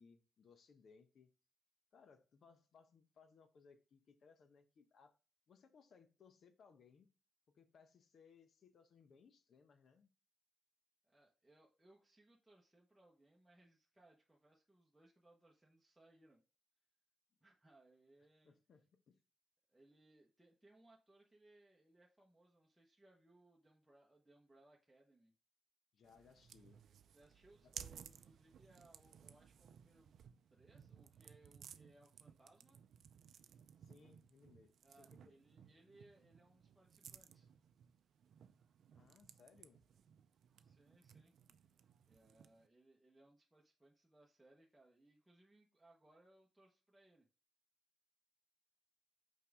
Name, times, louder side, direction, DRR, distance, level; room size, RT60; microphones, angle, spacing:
voice 1, 0.0-1.3 1.9-5.2 5.5-7.1 7.5-10.1 18.4-19.2 25.9-26.8 27.6-27.7 33.8-35.3 38.9-39.8, left 5 dB, 60° left, 1.0 m, -66 dB
voice 2, 11.0-16.4 17.4-18.6 19.7-25.3 27.1-30.1 30.5-32.8 34.8-37.5 40.6-41.3 42.1-47.3, right 2 dB, 5° right, 1.1 m, -68 dB
sound 1, 26.0-42.7, right 8 dB, 70° right, 0.5 m, -59 dB
5.9 x 4.7 x 3.5 m
cardioid pair, 110°, 0 cm